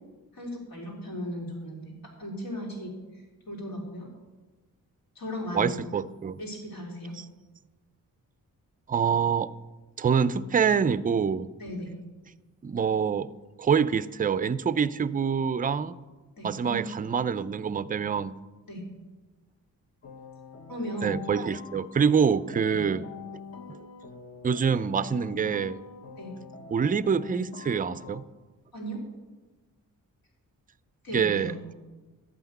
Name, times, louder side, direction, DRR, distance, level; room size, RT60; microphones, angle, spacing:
voice 1, 0.3-1.9 2.2-4.1 5.1-5.7 6.4-7.1 11.6-11.9 16.4-16.8 18.7-18.8 20.7-21.2 22.7-22.8 26.2-26.4 28.7-29.0 31.0-31.6, equal, 85° left, -1 dB, 3.2 m, -36 dB
voice 2, 5.5-6.4 7.2-7.3 8.9-9.5 10.0-11.5 12.6-13.3 13.6-15.9 16.4-18.4 21.0-23.0 23.7-23.8 24.4-25.8 26.7-28.2 31.1-31.5, right 6 dB, 25° right, 16 dB, 0.3 m, -26 dB
sound 1, 20.0-28.2, left 5 dB, 50° left, 1.1 m, -45 dB
12.0 x 5.8 x 9.1 m, 1.2 s
wide cardioid pair, 135°, 34 cm